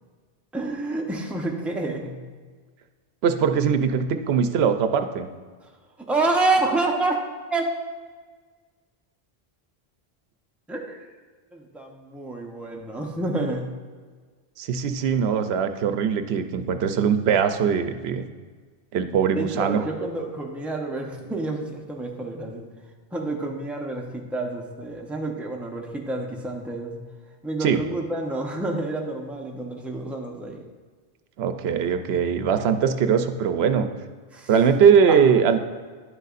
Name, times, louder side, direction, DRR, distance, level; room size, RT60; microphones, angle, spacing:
voice 1, 0.5-2.1 6.1-7.2 7.5-7.7 10.7-11.1 11.5-13.7 19.3-22.7 23.1-26.9 27.4-30.6 34.3-34.5 35.1-35.2, right 2 dB, ahead, 0 dB, 0.7 m, -28 dB
voice 2, 3.2-5.3 14.6-18.2 18.9-19.8 27.6-27.8 31.4-33.9 34.5-35.6, right 7 dB, 85° right, 8 dB, 0.8 m, -21 dB
10.5 x 6.6 x 2.5 m, 1.5 s
omnidirectional pair, 1.0 m